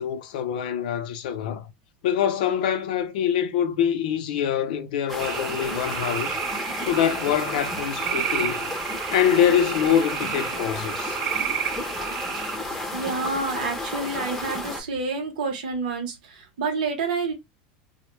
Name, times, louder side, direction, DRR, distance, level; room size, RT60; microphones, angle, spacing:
voice 1, 0.0-1.7 2.0-6.4 6.8-8.7 9.1-11.2, left 9 dB, 80° left, 0.5 m, -24 dB
sound 1, 5.1-14.8, left 1 dB, 5° left, 0.6 m, -32 dB
sound 2, 5.2-12.6, right 8 dB, 40° right, 0.3 m, -31 dB
voice 2, 12.9-17.3, right 4 dB, 85° right, 0.8 m, -28 dB
2.1 x 2.0 x 3.0 m
supercardioid pair, 135°, 5 cm